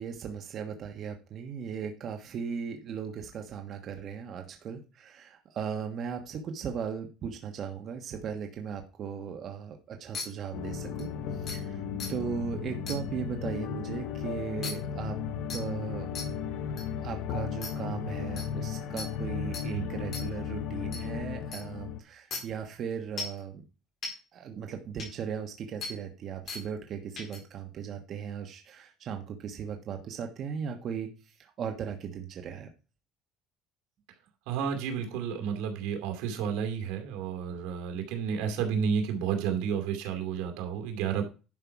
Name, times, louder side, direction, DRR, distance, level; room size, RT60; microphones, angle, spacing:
voice 1, 0.0-11.8 12.1-15.2 15.5-16.1 17.0-23.6 24.3-32.7, right 7 dB, 40° right, 4 dB, 1.3 m, -37 dB
sound 1, 10.1-10.2 11.0-11.1 11.5-11.6 12.0-12.1 12.9-13.0 14.6-14.7 15.5-15.6 16.1-16.2 16.8-16.9 17.6-17.7 18.4-18.5 19.0-19.1 19.5-19.6 20.1-20.2 20.9-21.0 21.5-21.6 22.3-22.4 23.2-23.4 24.0-24.1 25.0-25.1 25.8-25.9 26.5-26.6 27.2-27.4, left 4 dB, 35° left, 4.0 m, -36 dB
sound 2, 10.5-22.0, left 7 dB, 60° left, 0.9 m, -35 dB
voice 2, 34.5-41.2, right 7 dB, 85° right, 5 dB, 2.5 m, -31 dB
11.0 x 5.7 x 4.7 m, 0.32 s
cardioid pair, 155°, 0 cm